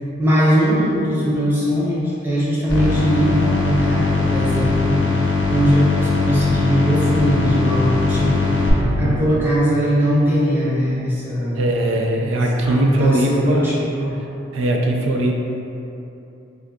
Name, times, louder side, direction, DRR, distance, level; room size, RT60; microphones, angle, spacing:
voice 1, 0.2-11.6 12.6-14.2, equal, 10° right, -9 dB, 0.6 m, -20 dB
sound 1, 2.7-8.7, left 3 dB, 75° left, 0.6 m, -20 dB
voice 2, 8.8-9.3 11.6-13.7 14.5-15.4, right 1 dB, 90° right, 0 dB, 0.4 m, -20 dB
3.5 x 3.5 x 2.2 m, 2.8 s
head